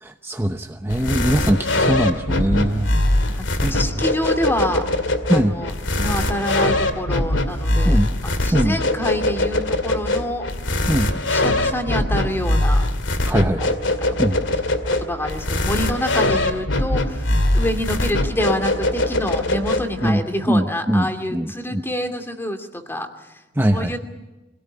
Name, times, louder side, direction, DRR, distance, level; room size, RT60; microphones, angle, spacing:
voice 1, 0.0-2.9 3.6-3.7 5.3-5.5 7.8-8.1 8.5-8.8 10.9-11.1 13.3-13.8 14.2-14.4 20.0-20.2 20.5-21.8 23.6-24.0, right 1 dB, 15° right, 6 dB, 0.9 m, -21 dB
sound 1, 0.9-20.1, left 1 dB, 85° left, 2.4 m, -22 dB
voice 2, 3.7-4.8 5.3-10.4 11.1-12.9 13.3-13.5 14.0-14.2 15.0-23.4 23.7-24.0, left 1 dB, 10° left, 6 dB, 2.5 m, -27 dB
24.5 x 18.0 x 9.9 m, 1.1 s
head